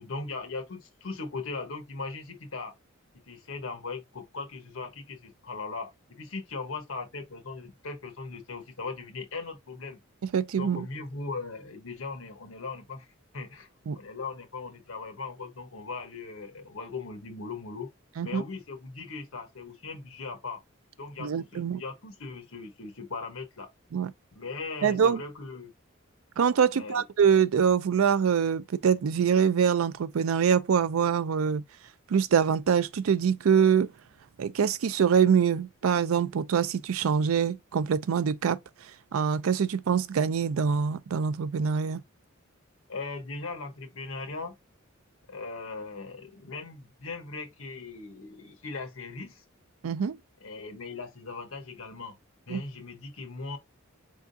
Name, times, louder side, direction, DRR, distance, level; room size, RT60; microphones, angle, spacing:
voice 1, 0.0-2.7 3.3-10.0 10.6-13.1 13.3-17.9 18.2-20.6 21.0-23.7 24.3-25.7 26.7-27.0 42.9-44.5 45.3-49.4 50.4-52.2 52.5-53.6, left 4 dB, 80° left, 1.1 m, -39 dB
voice 2, 10.3-10.8 13.9-14.0 18.2-18.4 21.2-21.8 23.9-24.1 24.8-25.2 26.4-31.6 32.1-33.9 34.4-38.6 39.1-42.0 49.8-50.2 52.5-52.6, right 7 dB, 80° right, 0.4 m, -24 dB
4.6 x 3.5 x 2.6 m
head